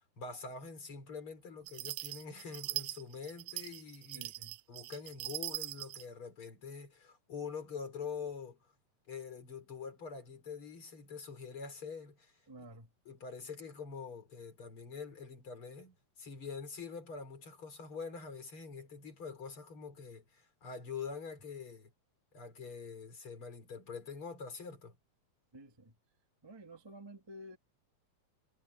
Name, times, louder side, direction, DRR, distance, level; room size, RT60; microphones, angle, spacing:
voice 1, 0.0-4.3 4.7-8.6 9.1-12.4 13.0-21.9 22.3-24.9, left 5 dB, 35° left, 5.0 m, -45 dB
sound 1, 1.7-6.1, right 20 dB, 85° right, 2.7 m, -41 dB
voice 2, 4.1-4.6 12.5-12.9 25.5-25.9 26.4-27.6, right 1 dB, 10° right, 1.5 m, -51 dB
omnidirectional pair, 4.2 m